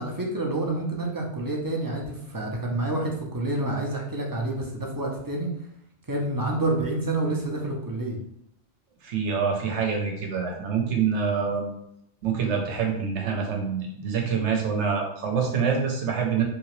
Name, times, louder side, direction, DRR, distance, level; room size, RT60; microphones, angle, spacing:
voice 1, 0.0-5.5 6.1-8.2, right 2 dB, 30° right, -1 dB, 0.4 m, -28 dB
voice 2, 9.0-11.7 12.2-16.4, right 6 dB, 85° right, 1 dB, 1.1 m, -26 dB
3.3 x 2.8 x 3.1 m, 0.75 s
omnidirectional pair, 1.2 m